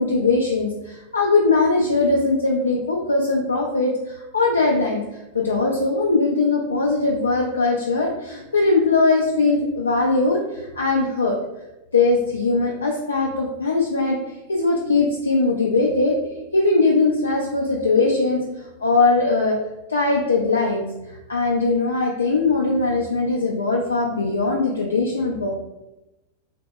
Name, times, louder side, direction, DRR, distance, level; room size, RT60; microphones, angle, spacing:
voice 1, 0.0-11.4 11.9-14.2 14.5-16.1 16.5-19.6 19.9-25.5, left 3 dB, 75° left, -1 dB, 0.3 m, -20 dB
2.8 x 2.0 x 3.4 m, 0.98 s
figure-of-eight pair, 90°, 0 cm